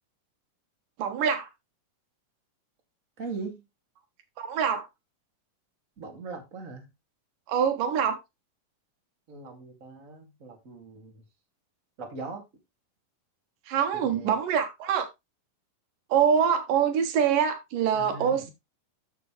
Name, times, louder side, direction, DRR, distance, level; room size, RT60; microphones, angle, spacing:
voice 1, 1.0-1.5 4.4-4.9 7.5-8.2 13.7-15.1 16.1-18.5, right 7 dB, 80° right, 3.1 m, -25 dB
voice 2, 3.2-3.6 6.0-6.9 9.3-11.2 12.0-12.4 13.9-14.4 17.9-18.5, right 3 dB, 25° right, 2.8 m, -40 dB
13.0 x 6.9 x 3.3 m
omnidirectional pair, 3.8 m